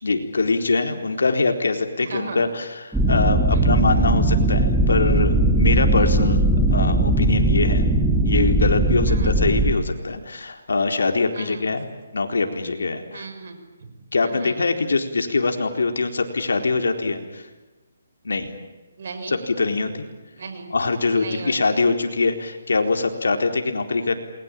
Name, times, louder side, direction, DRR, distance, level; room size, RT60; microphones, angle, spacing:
voice 1, 0.0-6.4 6.7-7.9 8.2-11.9 12.1-13.3 14.1-17.4 18.2-18.5 19.3-20.0 20.7-24.2, left 3 dB, 90° left, 5 dB, 4.1 m, -23 dB
voice 2, 2.0-2.4 3.5-3.6 6.0-6.1 9.1-9.4 11.3-11.6 13.1-13.9 14.2-14.5 19.0-19.4 20.4-20.7 21.2-21.8, right 4 dB, 55° right, 7 dB, 5.9 m, -36 dB
sound 1, 2.9-9.7, right 2 dB, 5° right, 2.2 m, -19 dB
28.5 x 22.0 x 9.1 m, 1.2 s
hypercardioid pair, 165°, 0 cm